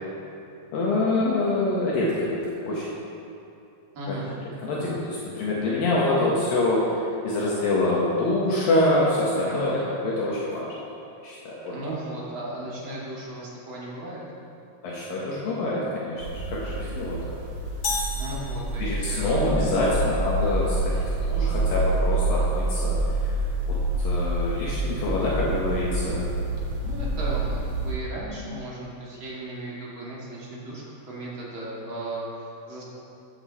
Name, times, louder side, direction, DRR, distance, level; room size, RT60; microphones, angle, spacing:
voice 1, 0.7-3.0 4.1-4.2 4.6-7.0 7.2-10.8 11.2-11.9 14.8-17.4 18.8-23.0 23.2-23.4 23.7-26.3, left 2 dB, 70° left, -6 dB, 2.9 m, -26 dB
voice 2, 3.9-4.3 9.4-10.0 11.7-14.2 18.1-19.6 26.8-32.8, right 1 dB, 35° right, -6 dB, 2.7 m, -36 dB
sound 1, 16.2-27.9, right 2 dB, 55° right, 1.8 m, -27 dB
sound 2, 17.8-19.2, left 3 dB, 90° left, 0.8 m, -32 dB
14.5 x 9.2 x 4.2 m, 2.7 s
omnidirectional pair, 4.4 m